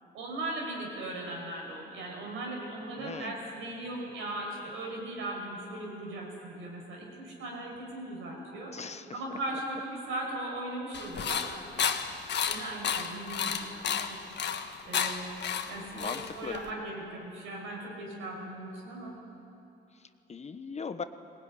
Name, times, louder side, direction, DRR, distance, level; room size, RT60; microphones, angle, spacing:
voice 1, 0.1-8.7 9.1-11.5 12.5-14.2 14.8-15.3 15.7-19.2, right 1 dB, 90° right, 0 dB, 6.1 m, -38 dB
voice 2, 3.0-3.5 8.7-9.4 15.9-16.6 19.9-21.0, left 5 dB, 35° left, 10 dB, 1.1 m, -40 dB
sound 1, 10.9-16.7, left 7 dB, 60° left, 1.4 m, -32 dB
20.0 x 19.5 x 10.0 m, 2.9 s
cardioid pair, 90°, 20 cm